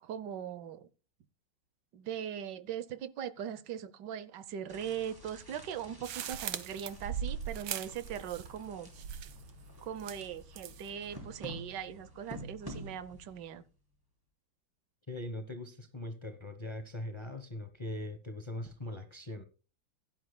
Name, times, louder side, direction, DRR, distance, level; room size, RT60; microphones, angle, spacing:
voice 1, 0.0-0.9 1.9-8.9 9.8-13.6, right 9 dB, 70° right, 1.4 m, -40 dB
sound 1, 4.7-13.5, equal, 10° right, 3.4 m, -49 dB
sound 2, 6.0-8.7 8.9-9.5 10.0-10.9, right 9 dB, 90° right, 1.7 m, -39 dB
voice 2, 15.1-19.4, left 1 dB, 25° left, 0.7 m, -41 dB
16.0 x 11.0 x 2.2 m
omnidirectional pair, 2.1 m